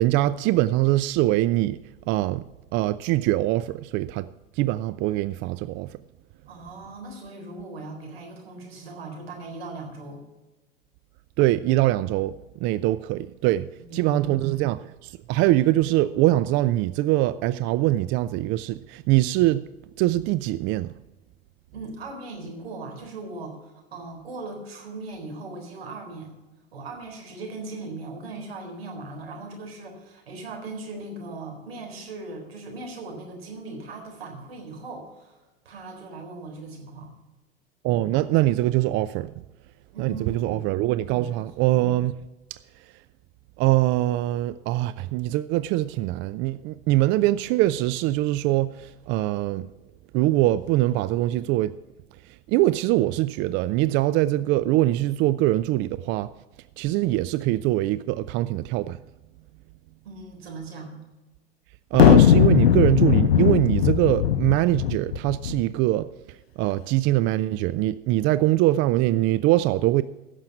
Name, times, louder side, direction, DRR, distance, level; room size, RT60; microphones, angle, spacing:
voice 1, 0.0-1.8 2.1-2.4 2.7-4.3 4.6-5.9 11.4-12.3 12.6-19.6 20.0-20.9 37.8-39.3 40.0-42.2 42.5-42.6 43.6-49.7 50.1-51.7 52.5-56.3 56.8-59.0 61.9-66.1 66.6-70.0, right 16 dB, 40° right, 0.4 m, -23 dB
voice 2, 6.5-10.2 13.8-14.5 21.7-26.3 26.7-35.4 35.6-37.1 39.9-40.7 41.2-41.7 60.0-61.0, right 2 dB, 80° right, 4.1 m, -39 dB
sound 1, 61.9-65.6, left 9 dB, 85° left, 0.6 m, -18 dB
16.0 x 6.6 x 5.9 m
hypercardioid pair, 90°, 30 cm